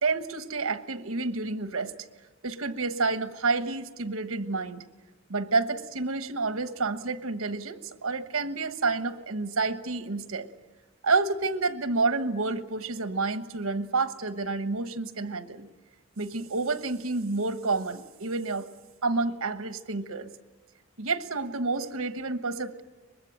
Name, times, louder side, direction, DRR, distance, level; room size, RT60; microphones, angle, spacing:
voice 1, 0.0-1.9 2.4-4.8 5.3-10.5 11.0-15.7 16.2-18.7 19.0-20.3 21.0-22.8, right 3 dB, 85° right, 11 dB, 1.2 m, -29 dB
24.0 x 21.0 x 8.9 m, 1.2 s
head